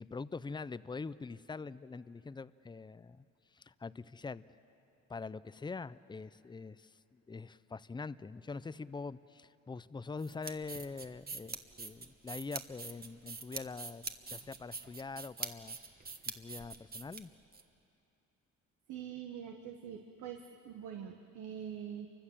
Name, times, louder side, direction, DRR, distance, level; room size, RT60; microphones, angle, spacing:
voice 1, 0.0-3.2 3.5-4.4 5.1-15.8 16.3-17.3, left 4 dB, 15° left, 16 dB, 0.5 m, -44 dB
sound 1, 10.2-17.6, right 4 dB, 30° right, 1.4 m, -44 dB
voice 2, 18.9-22.1, right 8 dB, 85° right, 3 dB, 1.4 m, -44 dB
29.0 x 24.5 x 7.4 m, 2.9 s
cardioid pair, 90°, 30 cm